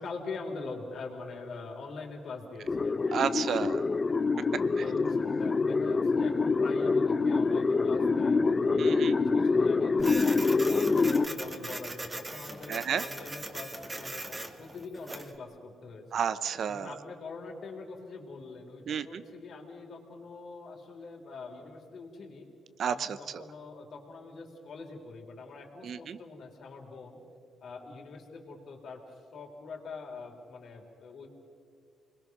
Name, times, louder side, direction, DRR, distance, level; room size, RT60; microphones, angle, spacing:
voice 1, 0.0-3.2 4.6-8.4 8.7-10.4 10.7-16.2 16.7-22.5 22.8-27.2 27.6-29.0 29.3-31.3, left 3 dB, 60° left, 1 dB, 3.8 m, -43 dB
sound 1, 2.7-11.3, left 4 dB, 30° left, 0.8 m, -26 dB
voice 2, 3.1-3.8 8.8-9.2 12.7-13.0 16.1-16.9 18.9-19.2 22.8-23.4 25.8-26.2, right 7 dB, 60° right, 14 dB, 0.9 m, -31 dB
Printer, 10.0-15.4, right 2 dB, 20° right, 1.8 m, -40 dB
28.5 x 21.5 x 6.1 m, 2.4 s
cardioid pair, 90°, 0 cm